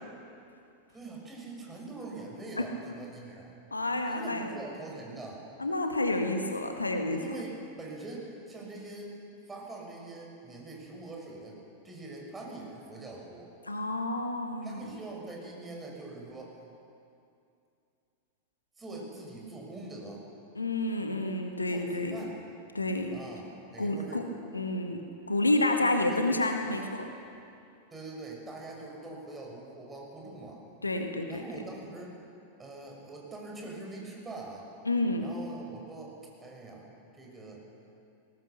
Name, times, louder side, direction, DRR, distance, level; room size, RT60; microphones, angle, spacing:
voice 1, 0.9-3.5 4.1-5.4 7.1-9.1 9.5-11.6 11.8-13.5 14.6-16.6 18.8-20.2 21.7-22.3 23.1-24.3 26.0-26.2 27.9-30.6 31.3-32.1 32.6-34.7 35.2-36.9 37.1-37.6, right 2 dB, 15° right, -1 dB, 5.9 m, -43 dB
voice 2, 3.7-4.5 5.6-7.2 13.7-15.0 20.5-22.2 22.7-23.2 23.8-24.2 24.5-25.0 25.3-27.1 30.8-31.4 34.8-35.3, left 2 dB, 80° left, 4 dB, 1.6 m, -29 dB
21.0 x 18.0 x 6.9 m, 2.5 s
figure-of-eight pair, 90°, 0 cm